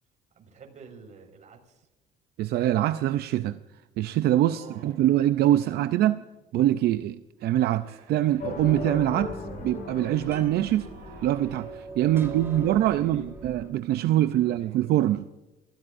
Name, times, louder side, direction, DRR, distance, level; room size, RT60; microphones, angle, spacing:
voice 1, 0.3-1.9 4.5-5.1 5.5-6.0 12.0-13.6 14.0-14.8, right 5 dB, 45° right, 5.3 m, -48 dB
voice 2, 2.4-3.6 4.0-6.2 6.5-10.9 11.2-15.2, right 13 dB, 70° right, 0.6 m, -24 dB
sound 1, 4.5-6.4 7.3-9.1 9.8-12.0, right 6 dB, 90° right, 2.7 m, -55 dB
sound 2, 8.4-12.4, left 3 dB, 60° left, 4.5 m, -38 dB
sound 3, 8.6-13.7, right 2 dB, 15° right, 3.6 m, -43 dB
26.5 x 15.5 x 2.6 m
cardioid pair, 110°, 17 cm